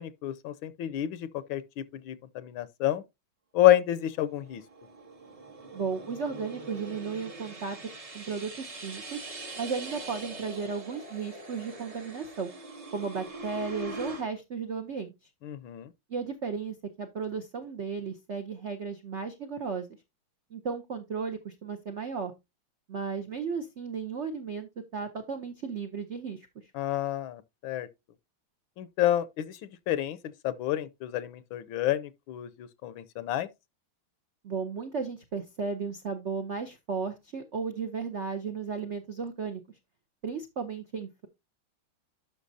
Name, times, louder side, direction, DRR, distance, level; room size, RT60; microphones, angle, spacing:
voice 1, 0.0-1.6 2.1-3.0 3.5-4.6 15.4-15.9 26.7-27.9 28.8-29.6 29.9-30.2 30.4-33.5, left 13 dB, 75° left, 1.4 m, -28 dB
sound 1, 4.1-14.2, right 2 dB, 35° right, 0.6 m, -43 dB
voice 2, 5.7-7.8 8.1-9.2 9.6-12.5 12.9-15.1 16.1-19.9 20.5-22.3 22.9-26.5 34.4-39.6 40.2-41.3, right 5 dB, 70° right, 0.6 m, -34 dB
11.5 x 6.0 x 2.7 m
omnidirectional pair, 2.3 m